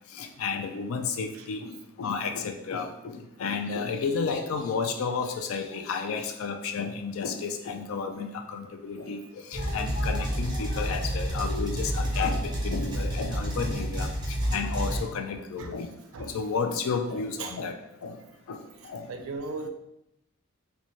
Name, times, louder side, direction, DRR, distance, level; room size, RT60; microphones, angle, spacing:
voice 1, 0.1-14.1 14.5-15.9 16.2-18.2 18.5-19.1, left 5 dB, 75° left, 5 dB, 0.4 m, -32 dB
sound 1, 9.5-15.1, equal, 20° right, 0.6 m, -29 dB
voice 2, 18.8-19.7, right 3 dB, 75° right, 5 dB, 0.4 m, -38 dB
4.0 x 2.2 x 3.0 m, 0.83 s
head